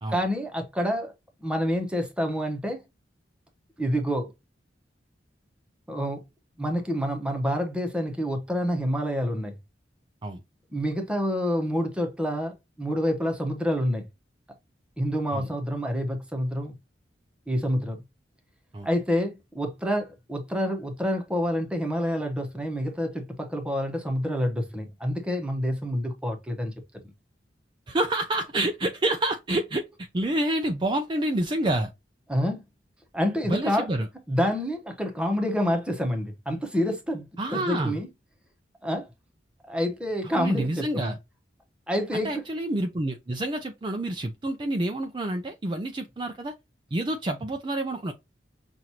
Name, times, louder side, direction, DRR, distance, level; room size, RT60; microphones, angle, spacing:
voice 1, 0.1-1.1 1.4-2.8 3.8-4.3 5.9-6.2 6.6-9.6 10.7-14.1 15.0-16.8 17.5-18.0 18.8-26.7 32.3-32.6 33.1-33.9 34.3-38.1 38.8-39.0 39.7-41.1 41.9-42.4, equal, 5° right, 1.0 m, -28 dB
voice 2, 27.9-31.9 33.4-34.1 37.4-37.9 40.4-41.2 42.1-46.5 46.9-48.1, right 1 dB, 25° right, 0.4 m, -28 dB
5.9 x 2.6 x 2.8 m
head